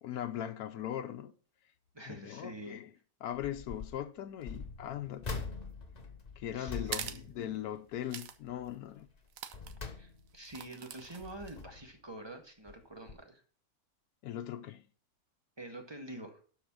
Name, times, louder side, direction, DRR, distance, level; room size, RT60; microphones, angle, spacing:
voice 1, 0.0-1.3 2.1-2.9 3.2-5.2 6.4-9.1 14.2-14.8, left 11 dB, 90° left, 1.2 m, -39 dB
voice 2, 1.9-2.8 6.5-7.2 9.8-13.4 15.6-16.4, right 1 dB, 15° right, 1.7 m, -47 dB
sound 1, 3.3-4.0 4.4-8.1 8.5-8.8 9.3-10.5 11.0-12.0 12.7-12.8 13.1-13.2, left 4 dB, 30° left, 1.1 m, -44 dB
sound 2, 6.9-7.2 8.1-8.4 8.7-8.8 9.3-9.7 10.4-11.6, right 9 dB, 70° right, 1.2 m, -42 dB
12.0 x 4.9 x 6.1 m
omnidirectional pair, 1.6 m